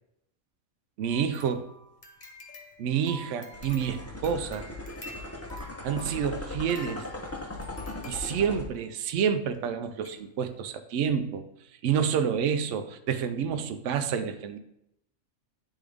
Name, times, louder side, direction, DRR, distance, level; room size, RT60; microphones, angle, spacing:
voice 1, 1.0-1.7 2.8-4.7 5.8-7.1 8.1-11.4 11.8-14.6, right 7 dB, 70° right, 9 dB, 0.9 m, -28 dB
sound 1, 1.1-8.9 9.5-9.6 10.0-10.2 10.6-10.7, left 1 dB, 35° left, 1.1 m, -48 dB
sound 2, 3.5-8.7, left 2 dB, 15° left, 0.5 m, -39 dB
10.0 x 3.6 x 3.5 m, 0.79 s
omnidirectional pair, 1.4 m